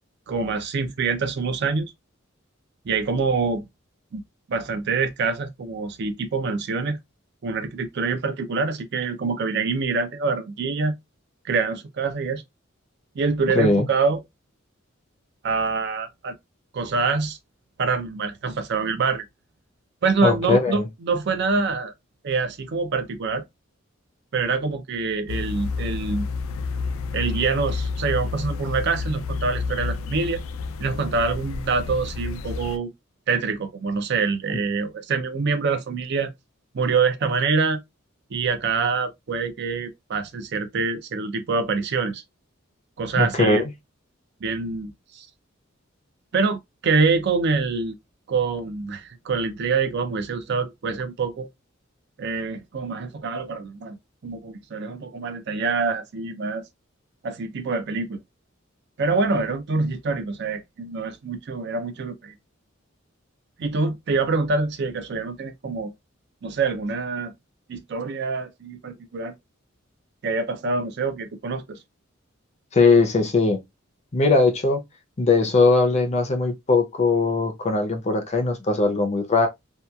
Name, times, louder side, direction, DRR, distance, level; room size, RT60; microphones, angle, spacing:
voice 1, 0.3-1.9 2.9-3.7 4.1-4.2 4.5-7.0 7.4-11.0 11.4-12.4 13.2-14.2 15.4-16.3 16.7-17.4 17.8-19.2 20.0-21.9 22.2-23.4 24.3-26.3 27.1-30.4 30.8-32.9 33.3-36.3 36.7-37.8 38.3-42.2 43.0-43.6 44.4-45.3 46.3-48.0 48.3-51.5 52.2-54.0 54.2-56.6 57.2-58.2 59.0-62.3 63.6-65.9 66.4-67.3 67.7-69.3 70.2-71.8, right 4 dB, 55° right, 0.4 m, -25 dB
voice 2, 13.5-13.9 20.2-20.9 43.2-43.7 72.7-73.6 74.1-74.8 75.2-79.5, left 3 dB, 35° left, 0.5 m, -20 dB
sound 1, 25.3-32.8, left 4 dB, 85° left, 0.3 m, -30 dB
2.8 x 2.2 x 2.2 m
head